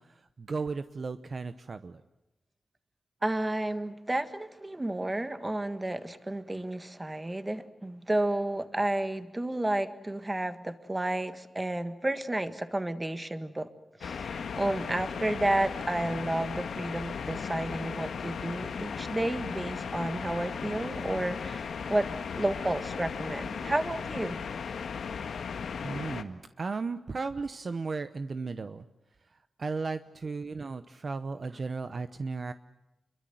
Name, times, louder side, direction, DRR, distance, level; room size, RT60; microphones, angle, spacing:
voice 1, 0.0-2.0 25.8-28.9 29.3-32.5, right 4 dB, 40° right, 11 dB, 0.8 m, -35 dB
voice 2, 3.2-13.7 14.0-22.1 22.3-24.4, right 1 dB, 15° right, 10 dB, 1.6 m, -31 dB
sound 1, 14.0-26.2, left 6 dB, 85° left, 1.7 m, -36 dB
29.5 x 23.0 x 7.8 m, 0.97 s
wide cardioid pair, 170°, 0 cm